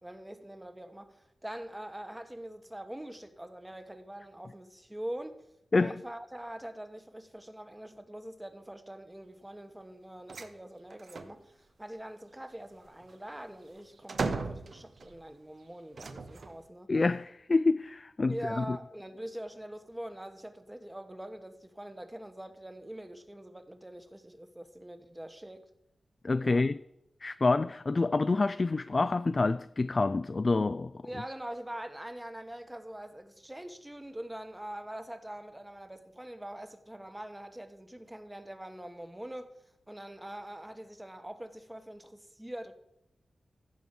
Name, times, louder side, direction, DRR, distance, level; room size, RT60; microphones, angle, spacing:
voice 1, 0.0-5.4 5.7-16.9 18.3-25.6 26.4-26.7 31.0-39.5 39.9-42.7, right 1 dB, 15° right, 1.2 m, -43 dB
sound 1, 10.3-10.5 10.9-11.4 12.8-15.2 15.9-16.7, right 4 dB, 70° right, 1.1 m, -37 dB
voice 2, 16.9-18.8 26.2-26.8 27.2-31.0, left 3 dB, 40° left, 0.3 m, -27 dB
15.0 x 6.3 x 5.4 m
wide cardioid pair, 75°, 0 cm